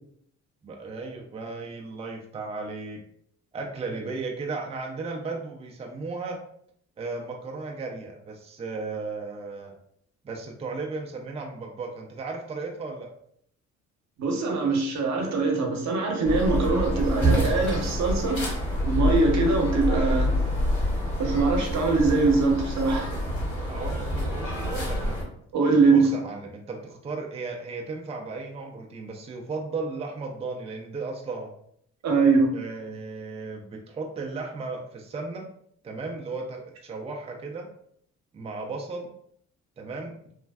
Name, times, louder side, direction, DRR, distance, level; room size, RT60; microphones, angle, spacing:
voice 1, 0.6-3.0 3.5-6.4 7.0-9.7 10.2-13.1 23.7-25.2 25.9-31.5 32.5-35.5 35.8-37.7 38.3-39.1 39.8-40.2, right 3 dB, 20° right, 0 dB, 0.4 m, -35 dB
voice 2, 14.2-18.4 18.8-20.3 21.2-23.1 25.5-26.1 32.0-32.5, right 3 dB, 65° right, 1 dB, 0.8 m, -22 dB
sound 1, 16.2-25.2, equal, 50° left, 1.4 m, -27 dB
3.1 x 2.5 x 2.3 m, 0.68 s
cardioid pair, 90°, 30 cm